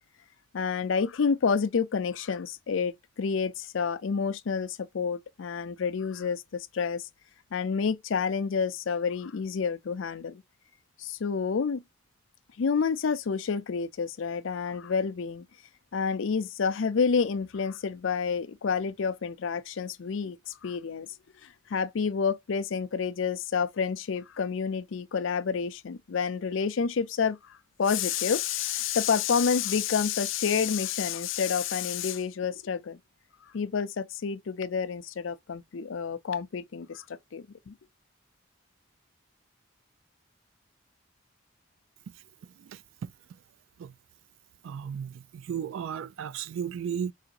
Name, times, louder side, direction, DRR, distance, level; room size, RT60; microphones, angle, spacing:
voice 1, 0.5-7.0 7.5-10.4 11.0-11.8 12.6-15.5 15.9-21.1 21.4-33.0 33.5-37.1 37.3-37.7, left 6 dB, 65° left, 0.5 m, -29 dB
voice 2, 44.6-47.1, right 8 dB, 70° right, 0.3 m, -34 dB
4.9 x 2.5 x 2.8 m
head